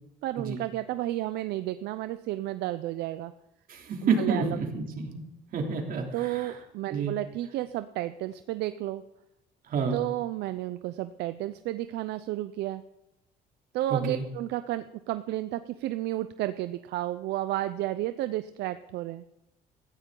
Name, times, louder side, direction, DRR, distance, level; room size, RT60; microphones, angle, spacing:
voice 1, 0.2-3.3 4.2-4.7 6.1-9.0 9.9-12.8 13.7-19.2, right 15 dB, 80° right, 12 dB, 0.6 m, -32 dB
voice 2, 3.7-5.2 5.5-6.6 6.9-7.2 9.7-10.0 13.9-14.2, right 5 dB, 55° right, 2 dB, 3.0 m, -29 dB
17.5 x 14.5 x 3.8 m, 0.88 s
cardioid pair, 110°, 17 cm